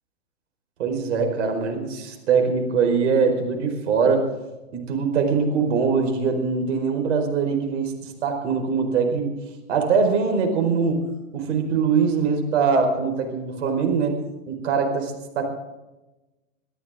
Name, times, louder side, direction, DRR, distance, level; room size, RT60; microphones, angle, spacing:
voice 1, 0.8-4.3 4.7-9.3 9.7-11.0 11.3-14.2 14.5-15.4, right 5 dB, 65° right, 4 dB, 4.8 m, -22 dB
23.5 x 13.5 x 3.7 m, 1.0 s
hypercardioid pair, 110°, 38 cm